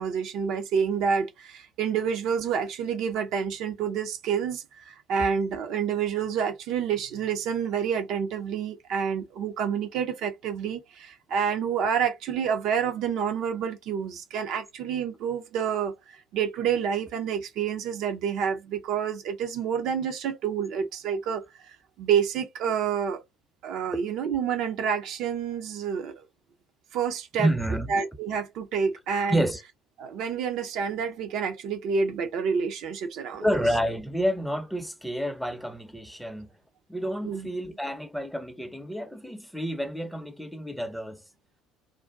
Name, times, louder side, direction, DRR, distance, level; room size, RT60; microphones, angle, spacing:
voice 1, 0.0-23.2 23.6-26.2 26.9-27.5 27.9-29.4 30.0-33.5 37.2-37.5, right 7 dB, 60° right, 0.5 m, -28 dB
voice 2, 27.4-27.9 29.3-29.6 33.4-36.5 36.9-41.2, equal, ahead, 0.6 m, -29 dB
2.5 x 2.2 x 3.4 m
figure-of-eight pair, 55°, 0 cm